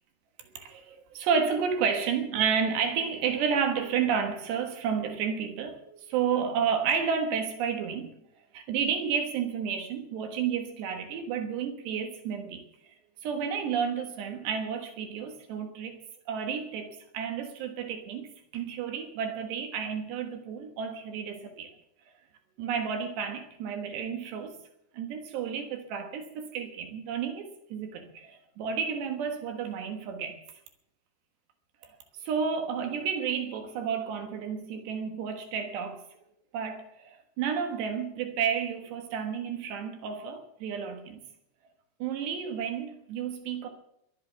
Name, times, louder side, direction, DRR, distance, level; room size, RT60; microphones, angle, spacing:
voice 1, 0.5-8.1 8.5-12.6 13.2-16.0 16.3-21.7 22.6-24.5 24.9-30.4 31.8-31.9 32.2-36.0 36.5-41.2 42.0-43.7, right 7 dB, 75° right, 3.4 m, -31 dB
22.5 x 7.9 x 7.0 m
omnidirectional pair, 5.2 m